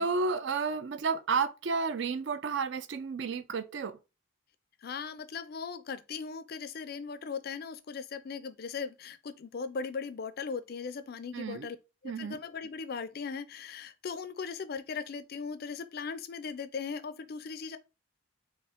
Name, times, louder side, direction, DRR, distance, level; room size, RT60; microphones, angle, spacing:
voice 1, 0.0-4.0 11.3-11.7 12.0-12.4, right 4 dB, 60° right, 0.4 m, -31 dB
voice 2, 4.8-11.8 12.0-17.8, left 5 dB, 50° left, 0.4 m, -38 dB
4.3 x 2.8 x 3.5 m
head